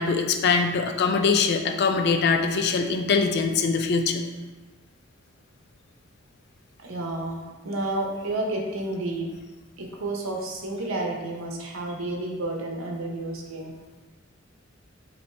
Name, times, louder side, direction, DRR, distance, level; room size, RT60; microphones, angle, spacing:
voice 1, 0.0-4.2, left 5 dB, 55° left, 5 dB, 0.4 m, -23 dB
voice 2, 6.8-9.3 9.8-13.7, right 2 dB, 85° right, 0 dB, 0.8 m, -31 dB
5.4 x 2.7 x 3.3 m, 1.2 s
head